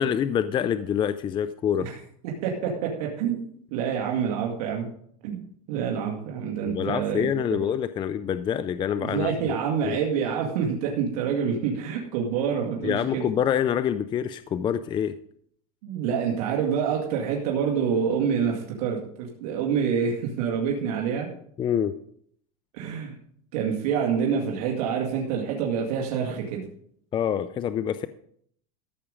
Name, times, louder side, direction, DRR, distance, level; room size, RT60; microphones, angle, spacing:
voice 1, 0.0-1.9 6.6-9.5 9.8-10.0 12.8-15.2 21.6-21.9 27.1-28.1, left 9 dB, 25° left, 13 dB, 0.4 m, -26 dB
voice 2, 2.2-3.4 3.7-4.9 5.2-5.4 5.7-7.6 9.0-13.3 15.8-21.3 22.7-23.2 23.5-26.6, right 7 dB, 70° right, -1 dB, 2.1 m, -27 dB
14.0 x 7.0 x 5.1 m, 0.65 s
supercardioid pair, 130°, 20 cm